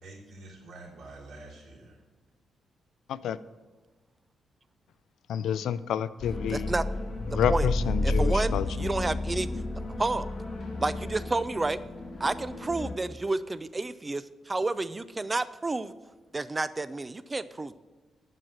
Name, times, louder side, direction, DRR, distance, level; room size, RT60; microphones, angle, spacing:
voice 1, 0.0-2.0, right 2 dB, 80° right, -4 dB, 3.1 m, -47 dB
voice 2, 5.3-6.7 7.3-8.9, left 9 dB, 85° left, 16 dB, 0.4 m, -29 dB
sound 1, 6.2-12.9, left 2 dB, 40° left, 1.8 m, -31 dB
voice 3, 6.5-6.8 7.5-7.7 8.0-9.5 10.0-10.3 10.8-11.8 12.2-15.9 16.3-17.7, right 2 dB, 20° right, 14 dB, 0.3 m, -30 dB
7.7 x 5.8 x 7.7 m, 1.3 s
cardioid pair, 150°, 0 cm